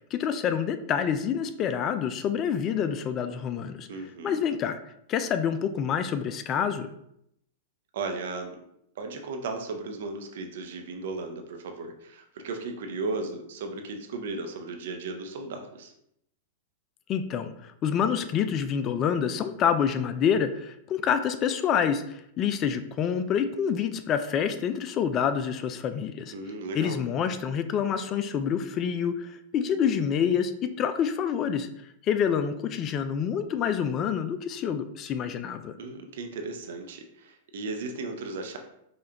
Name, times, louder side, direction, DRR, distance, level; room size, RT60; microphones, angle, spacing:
voice 1, 0.1-3.9 4.2-4.8 5.1-6.9 17.1-26.3 26.7-31.7 32.0-35.7, left 8 dB, 35° left, 10 dB, 0.3 m, -27 dB
voice 2, 3.9-4.4 7.9-8.6 9.0-15.9 26.3-27.0 35.8-38.6, right 3 dB, 65° right, 5 dB, 0.6 m, -35 dB
5.0 x 2.3 x 2.8 m, 0.75 s
hypercardioid pair, 100°, 0 cm